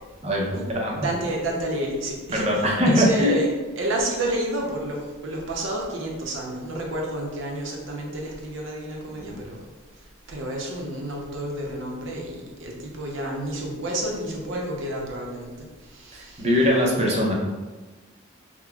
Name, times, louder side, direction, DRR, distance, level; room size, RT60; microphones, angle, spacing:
voice 1, 0.2-1.0 2.3-3.4 9.2-9.4 16.1-17.3, left 1 dB, 30° right, -2 dB, 0.6 m, -22 dB
voice 2, 0.9-2.5 2.8-9.6 10.3-15.5 15.9-16.5, right 1 dB, 65° right, -1 dB, 0.7 m, -30 dB
5.8 x 2.2 x 2.3 m, 1.3 s
head